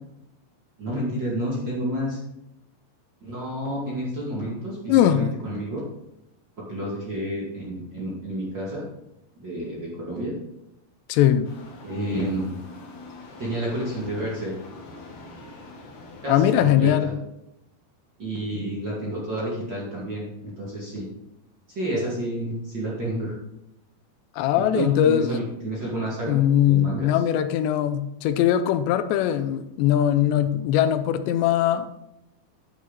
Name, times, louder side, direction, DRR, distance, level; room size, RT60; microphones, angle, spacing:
voice 1, 0.8-2.2 3.2-5.8 6.6-8.8 9.4-10.3 11.8-12.6 13.4-14.6 16.2-17.1 18.2-21.1 21.7-23.3 24.7-26.4 26.7-27.2, right 1 dB, 35° right, -5 dB, 2.1 m, -30 dB
voice 2, 4.9-5.3 11.1-11.5 16.3-17.1 24.4-25.3 26.3-31.9, left 10 dB, 85° left, 11 dB, 2.9 m, -21 dB
sound 1, 11.4-16.6, left 2 dB, 55° left, 2.6 m, -43 dB
10.0 x 9.4 x 4.1 m, 0.86 s
omnidirectional pair, 5.0 m